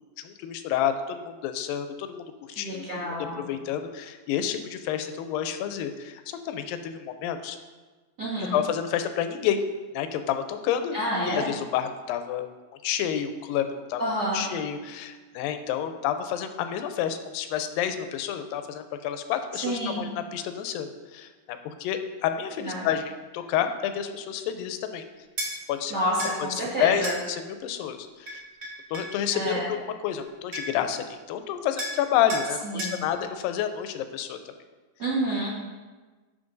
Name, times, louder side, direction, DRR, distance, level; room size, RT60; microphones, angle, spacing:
voice 1, 0.2-7.6 8.4-9.6 9.9-11.0 11.3-12.5 12.8-14.0 14.3-25.0 25.7-26.1 26.4-28.4 28.9-34.4, left 9 dB, 80° left, 8 dB, 2.2 m, -29 dB
voice 2, 2.6-3.5 8.2-8.6 10.9-11.5 14.0-14.5 19.5-20.1 22.6-22.9 25.9-27.1 29.3-29.7 32.6-33.1 35.0-35.5, right 1 dB, 80° right, -7 dB, 0.9 m, -29 dB
sound 1, 25.4-25.5 26.2-26.4 27.0-27.2 28.3-29.1 30.2-30.3 30.5-30.9 31.8-32.0 32.3-32.5 32.8-33.0, equal, 45° right, 1.6 m, -33 dB
11.0 x 7.4 x 2.6 m, 1.3 s
omnidirectional pair, 4.2 m